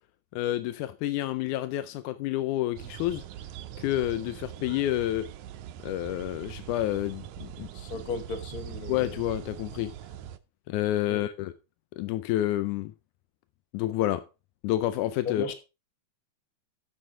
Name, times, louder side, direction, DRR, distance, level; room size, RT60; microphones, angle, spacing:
voice 1, 0.3-3.2 3.8-5.3 5.8-7.7 8.9-9.9 10.7-11.5 12.0-12.9 13.7-14.2 14.6-15.5, left 14 dB, 90° left, 2.1 m, -29 dB
sound 1, 2.8-10.4, right 11 dB, 80° right, 2.0 m, -42 dB
voice 2, 7.7-9.0 11.1-11.2 15.2-15.5, left 5 dB, 50° left, 1.1 m, -35 dB
14.0 x 6.3 x 3.7 m
omnidirectional pair, 3.4 m